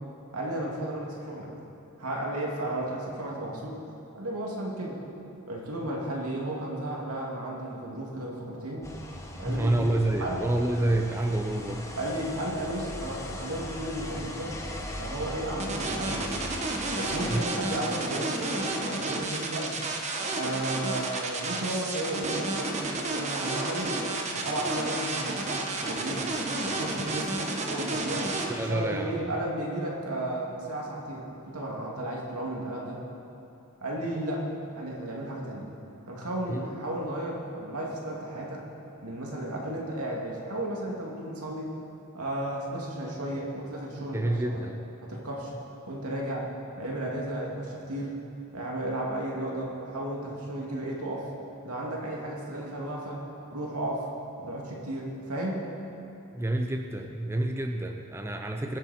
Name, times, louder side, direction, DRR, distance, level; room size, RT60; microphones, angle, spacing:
voice 1, 0.3-1.5 2.0-3.8 4.1-5.0 5.5-8.9 9.4-9.9 10.2-10.4 12.0-14.6 15.0-16.4 17.0-19.8 20.3-24.0 24.3-26.3 26.7-27.3 27.7-28.3 28.5-33.0 33.8-34.5 34.7-35.7 36.1-38.6 39.0-41.8 42.1-44.6 45.0-45.5 45.9-46.5 46.8-48.1 48.5-51.3 51.6-53.2 53.5-54.1 54.4-55.7, right 1 dB, 80° right, -2 dB, 2.5 m, -34 dB
sound 1, 8.8-17.4, left 1 dB, 15° left, 1.0 m, -39 dB
voice 2, 9.5-11.9 17.3-17.4 28.5-29.4 36.5-36.6 44.1-44.8 56.3-58.8, right 1 dB, 10° right, 3 dB, 0.5 m, -28 dB
sound 2, 15.6-28.4, right 3 dB, 30° right, 1.2 m, -31 dB
22.0 x 8.3 x 4.3 m, 2.9 s
head